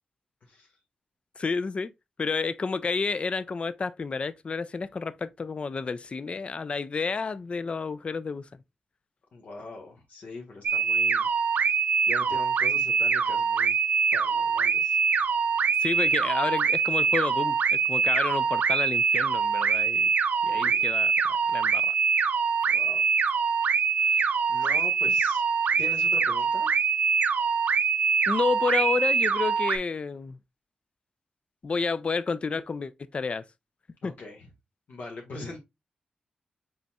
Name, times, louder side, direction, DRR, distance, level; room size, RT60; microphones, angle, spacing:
voice 1, 1.4-1.9 2.2-8.5 15.8-20.1 20.4-21.1 21.5-21.9 28.3-30.4 31.6-33.4 34.0-34.1, left 4 dB, 45° left, 0.5 m, -30 dB
voice 2, 9.3-11.3 12.1-13.7 14.1-15.0 20.4-20.8 22.7-23.1 24.0-25.4 25.8-26.7 34.0-34.5 34.9-35.6, left 3 dB, 75° left, 1.7 m, -42 dB
sound 1, 10.6-29.8, right 5 dB, 75° right, 0.7 m, -24 dB
5.5 x 4.2 x 2.3 m
wide cardioid pair, 100°, 3 cm